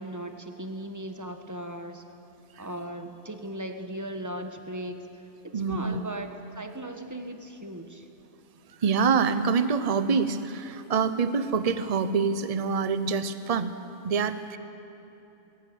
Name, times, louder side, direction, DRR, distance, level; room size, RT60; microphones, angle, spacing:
voice 1, 0.0-2.0 2.6-8.1, right 1 dB, 15° right, 6 dB, 1.3 m, -37 dB
voice 2, 5.5-6.0 8.8-13.7 14.0-14.6, right 5 dB, 35° right, 12 dB, 0.8 m, -26 dB
20.5 x 17.0 x 9.4 m, 3.0 s
omnidirectional pair, 1.3 m